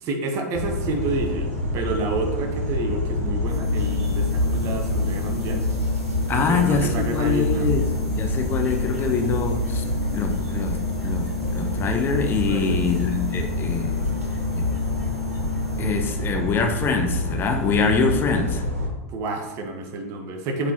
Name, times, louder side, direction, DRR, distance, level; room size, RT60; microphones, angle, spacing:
voice 1, 0.0-5.7 6.3-7.7 12.5-12.8 19.1-20.7, right 2 dB, 40° right, 4 dB, 1.0 m, -29 dB
sound 1, 0.5-18.9, left 1 dB, 80° right, 1.8 m, -26 dB
sound 2, 3.4-16.4, left 12 dB, ahead, 2.0 m, -34 dB
voice 2, 6.3-9.8 10.1-14.1 14.6-14.7 15.8-18.6, left 5 dB, 25° left, 4 dB, 0.7 m, -25 dB
8.0 x 4.1 x 2.9 m, 1.1 s
figure-of-eight pair, 95°, 8 cm